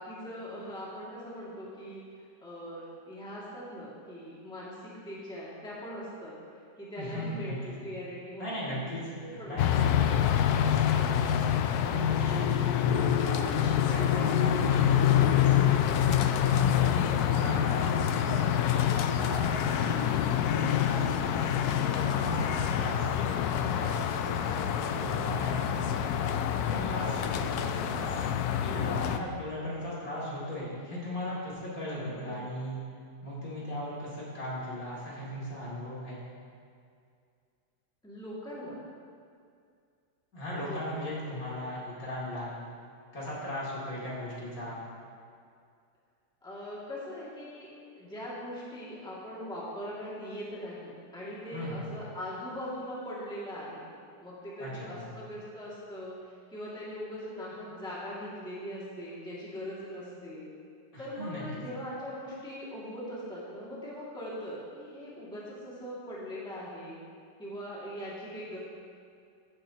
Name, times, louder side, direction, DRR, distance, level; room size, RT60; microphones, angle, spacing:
voice 1, 0.0-2.0 2.4-6.4 6.8-8.7 9.2-9.9 32.1-32.4 38.0-38.8 40.5-40.8 41.2-41.4 46.4-47.7 48.0-53.8 54.2-60.5 61.0-67.0 67.4-68.6, equal, 5° left, -8 dB, 2.1 m, -41 dB
voice 2, 7.0-7.9 8.4-9.0 9.3-11.3 11.9-16.0 16.5-21.4 21.8-26.2 26.6-28.3 28.6-32.8 33.2-36.2 40.3-42.5 43.1-44.8 51.5-51.9 54.6-55.1 60.9-61.4, left 1 dB, 55° left, -7 dB, 3.1 m, -38 dB
sound 1, 9.6-29.2, left 9 dB, 70° left, 1.0 m, -26 dB
15.5 x 9.1 x 2.9 m, 2.3 s
omnidirectional pair, 1.9 m